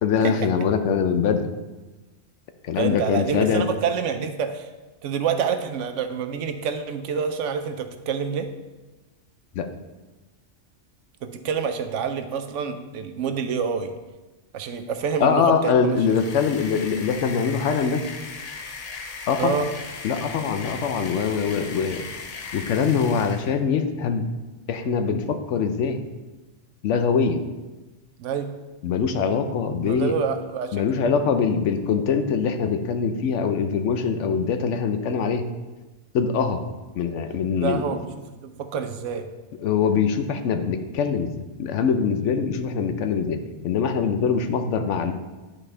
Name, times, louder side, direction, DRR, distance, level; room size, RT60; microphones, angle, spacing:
voice 1, 0.0-1.5 2.6-3.6 9.5-9.7 15.2-18.0 19.3-19.6 20.0-22.1 22.5-24.3 24.7-26.0 26.8-27.4 28.8-30.1 30.7-35.4 36.1-36.6 37.0-37.8 39.6-45.1, left 6 dB, 85° left, 8 dB, 1.0 m, -23 dB
voice 2, 2.7-4.7 5.0-8.5 11.2-13.9 14.5-16.2 19.4-19.7 21.0-21.2 28.2-28.5 29.8-30.8 37.6-39.2, right 6 dB, 90° right, 8 dB, 1.0 m, -27 dB
sound 1, 15.9-23.6, left 4 dB, 50° left, 0.5 m, -38 dB
9.9 x 4.3 x 3.3 m, 1.2 s
omnidirectional pair, 1.2 m